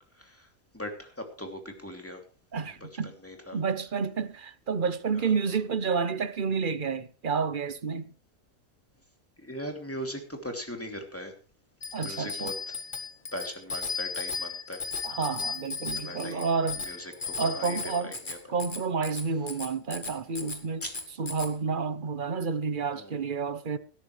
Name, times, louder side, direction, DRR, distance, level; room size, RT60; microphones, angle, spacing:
voice 1, 0.1-0.5 0.7-2.2 2.8-2.9 3.2-3.6 5.1-5.3 9.4-11.3 12.0-12.8 13.3-14.8 16.0-16.5 16.8-18.4 20.8-20.9 22.9-23.2, equal, 10° left, 2.8 m, -39 dB
voice 2, 2.5-3.2 3.5-8.1 11.9-12.5 15.0-16.8 17.4-18.1 18.5-20.8 21.2-23.8, right 5 dB, 40° right, 0.9 m, -30 dB
Bicycle bell, 11.8-21.5, left 5 dB, 35° left, 2.0 m, -36 dB
17.5 x 13.0 x 3.3 m
omnidirectional pair, 1.4 m